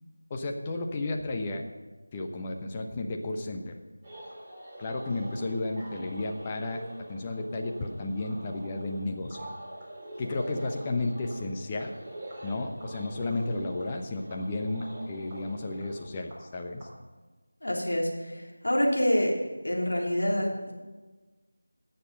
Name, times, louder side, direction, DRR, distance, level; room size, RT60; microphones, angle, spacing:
voice 1, 0.3-1.7 2.1-3.8 4.8-6.8 7.1-9.5 10.2-11.9 12.4-16.9, left 2 dB, 20° left, 3 dB, 1.0 m, -33 dB
sound 1, 4.0-16.8, right 1 dB, 15° right, 3.7 m, -45 dB
voice 2, 17.6-19.4 19.6-20.7, equal, 75° left, -2 dB, 3.4 m, -27 dB
18.0 x 6.8 x 5.5 m, 1.3 s
figure-of-eight pair, 170°, 0 cm